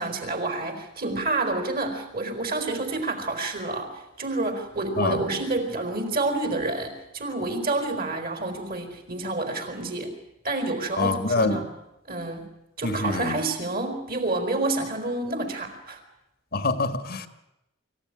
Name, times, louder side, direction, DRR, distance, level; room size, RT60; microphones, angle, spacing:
voice 1, 0.0-10.1 10.4-11.8 12.1-12.5 12.8-16.0, right 2 dB, 45° right, 4.5 m, -29 dB
voice 2, 11.0-11.6 12.8-13.3 16.5-17.3, left 3 dB, 50° left, 1.6 m, -25 dB
25.0 x 15.5 x 9.9 m
head